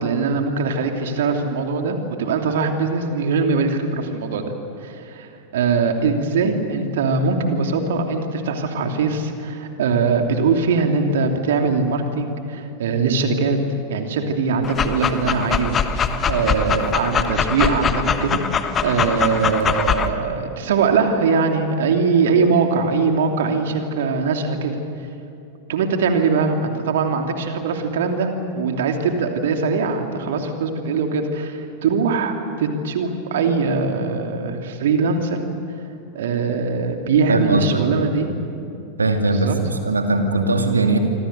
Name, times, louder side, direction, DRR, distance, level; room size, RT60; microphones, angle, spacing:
voice 1, 0.0-4.5 4.8-13.6 13.9-18.4 18.8-24.8 25.7-35.4 36.1-38.3 39.3-39.6, right 4 dB, 60° right, 4 dB, 2.9 m, -21 dB
Dog, 14.6-20.1, left 6 dB, 25° left, 1.3 m, -22 dB
voice 2, 37.3-38.1 39.0-41.0, right 3 dB, 75° right, 4 dB, 2.5 m, -20 dB
26.5 x 26.0 x 6.8 m, 2.7 s
figure-of-eight pair, 90°, 0 cm